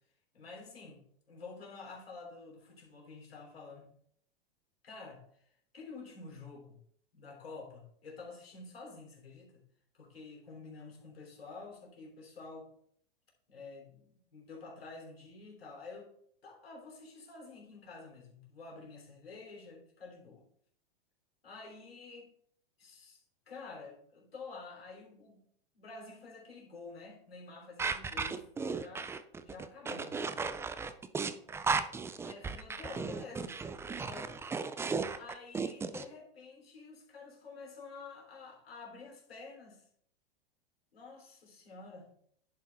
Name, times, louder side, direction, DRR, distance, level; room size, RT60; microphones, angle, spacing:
voice 1, 0.3-1.0 1.3-3.9 4.8-5.4 5.7-6.8 7.1-9.6 9.9-12.7 13.5-16.1 16.4-20.4 21.4-22.3 22.8-25.4 25.7-29.1 29.4-30.2 32.2-34.3 35.1-39.8 40.9-42.1, left 4 dB, 90° left, -1 dB, 3.4 m, -49 dB
sound 1, 27.8-36.0, right 4 dB, 10° right, 0.4 m, -35 dB
10.5 x 4.7 x 4.4 m, 0.66 s
hypercardioid pair, 110°, 29 cm